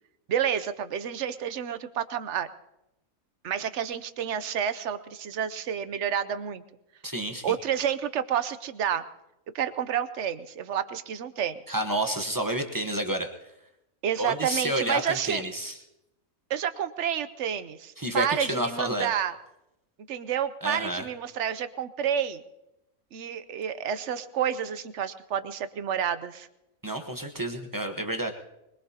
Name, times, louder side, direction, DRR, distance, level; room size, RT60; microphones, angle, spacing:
voice 1, 0.3-2.5 3.4-6.6 7.3-9.0 9.5-11.6 14.0-15.4 16.5-19.4 20.1-22.4 23.1-26.5, right 9 dB, 60° right, 12 dB, 0.9 m, -29 dB
voice 2, 7.0-7.6 11.7-13.5 14.2-15.8 18.0-19.1 20.6-21.1 26.8-28.3, right 1 dB, 15° right, 5 dB, 0.9 m, -30 dB
22.0 x 21.0 x 2.8 m, 0.90 s
omnidirectional pair, 1.5 m